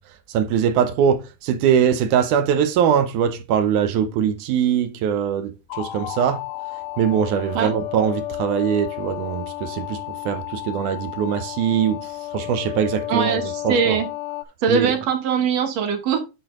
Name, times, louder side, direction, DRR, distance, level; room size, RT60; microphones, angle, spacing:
voice 1, 0.3-6.4 7.0-13.4 13.6-14.0 14.7-14.9, right 8 dB, 80° right, 2.3 m, -22 dB
sound 1, 5.7-14.5, left 16 dB, 75° left, 1.8 m, -32 dB
voice 2, 13.1-14.1 14.6-16.2, right 6 dB, 60° right, 2.3 m, -21 dB
8.5 x 4.4 x 3.7 m
omnidirectional pair, 3.5 m